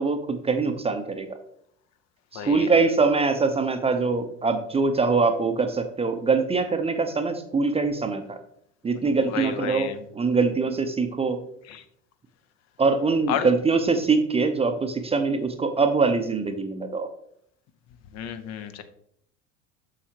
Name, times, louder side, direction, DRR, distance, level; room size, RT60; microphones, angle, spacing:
voice 1, 0.0-1.4 2.3-8.4 8.8-11.4 12.8-17.1, right 4 dB, 15° right, 8 dB, 0.7 m, -23 dB
voice 2, 2.3-2.7 9.2-10.0 11.7-11.8 13.3-13.5 18.1-18.8, left 8 dB, 45° left, 9 dB, 0.8 m, -31 dB
7.5 x 6.4 x 2.9 m, 0.69 s
figure-of-eight pair, 70°, 38 cm